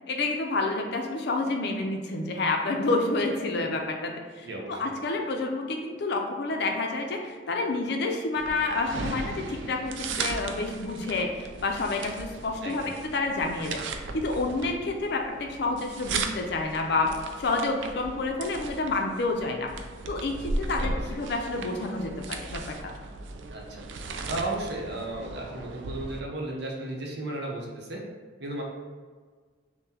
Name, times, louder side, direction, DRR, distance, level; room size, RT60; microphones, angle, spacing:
voice 1, 0.1-12.8 13.1-13.8 14.1-17.1 17.4-19.7 20.1-22.9, left 3 dB, 65° left, 3 dB, 0.5 m, -29 dB
voice 2, 4.4-4.9 12.6-12.9 20.8-21.1 23.5-23.8 24.3-28.0 28.4-28.6, right 2 dB, 65° right, -1 dB, 0.7 m, -34 dB
sound 1, 8.4-26.2, right 3 dB, 85° right, 0.4 m, -37 dB
5.6 x 2.1 x 2.8 m, 1.5 s
head